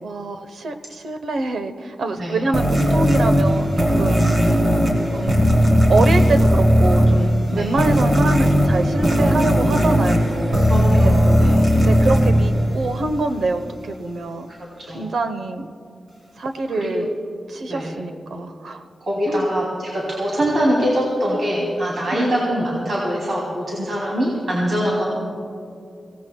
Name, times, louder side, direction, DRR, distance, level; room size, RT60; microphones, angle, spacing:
voice 1, 0.0-4.3 5.1-5.4 5.9-10.7 11.2-11.4 11.8-14.5 14.9-15.7 16.4-17.1 17.5-18.8 19.3-19.4 22.1-22.3, right 2 dB, 85° right, 7 dB, 1.0 m, -25 dB
sound 1, 2.5-13.3, equal, 35° right, 3.2 m, -17 dB
voice 2, 10.6-11.7 14.8-15.0 16.7-16.9 17.7-18.0 19.0-25.0, equal, 50° right, -5 dB, 3.0 m, -23 dB
25.5 x 17.5 x 2.3 m, 2.5 s
wide cardioid pair, 175°, 0 cm